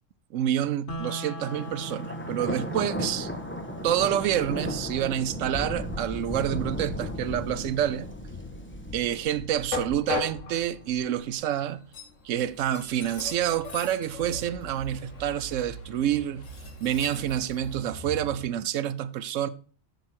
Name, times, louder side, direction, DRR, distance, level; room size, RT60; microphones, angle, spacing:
voice 1, 0.3-3.3 3.8-8.1 8.9-11.8 12.2-16.5 16.8-19.5, right 11 dB, 85° right, 1.0 m, -28 dB
sound 1, 0.9-10.9, right 1 dB, 50° left, 1.0 m, -44 dB
Thunder, 1.4-11.2, equal, 10° left, 1.2 m, -35 dB
Train, 1.8-18.5, left 3 dB, 85° left, 1.8 m, -41 dB
7.9 x 7.3 x 4.4 m
omnidirectional pair, 1.3 m